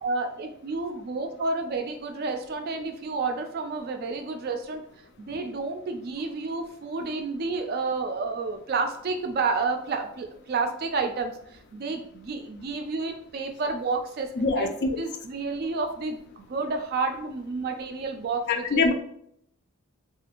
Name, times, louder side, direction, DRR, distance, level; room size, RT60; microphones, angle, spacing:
voice 1, 0.0-4.8 5.2-14.7 15.0-18.9, right 3 dB, 45° right, 5 dB, 0.3 m, -30 dB
voice 2, 14.4-14.9 18.5-18.9, left 3 dB, 50° left, 6 dB, 0.3 m, -23 dB
2.5 x 2.3 x 2.9 m, 0.68 s
head